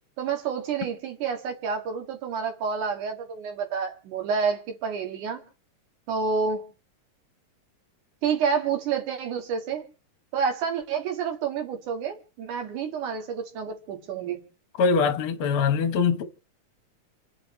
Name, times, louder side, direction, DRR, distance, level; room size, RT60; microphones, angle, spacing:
voice 1, 0.2-5.4 6.1-6.6 8.2-9.9 10.3-14.4, right 6 dB, 75° right, 3.2 m, -29 dB
voice 2, 14.8-16.2, left 5 dB, 55° left, 1.7 m, -22 dB
29.0 x 9.6 x 3.2 m
omnidirectional pair, 3.7 m